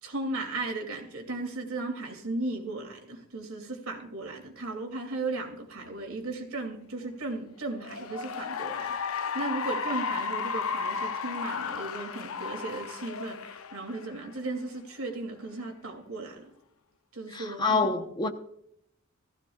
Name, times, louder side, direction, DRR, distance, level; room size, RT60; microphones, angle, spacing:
voice 1, 0.0-16.5 17.1-18.0, right 2 dB, 70° right, 2.7 m, -36 dB
Cheering / Applause, 7.7-14.4, left 5 dB, 75° left, 0.6 m, -34 dB
voice 2, 17.3-18.3, left 4 dB, 20° left, 0.9 m, -27 dB
17.5 x 15.0 x 2.4 m
head